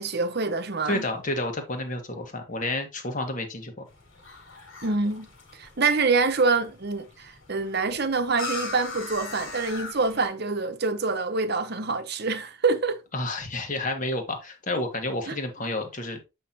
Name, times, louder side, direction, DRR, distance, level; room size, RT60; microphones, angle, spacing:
voice 1, 0.0-1.1 4.8-13.0 15.3-15.4, right 4 dB, 50° right, 1.0 m, -26 dB
voice 2, 0.8-3.7 13.1-16.3, left 2 dB, 35° left, 1.6 m, -30 dB
sound 1, 3.9-10.3, left 3 dB, 75° left, 3.3 m, -40 dB
8.3 x 5.7 x 2.9 m
head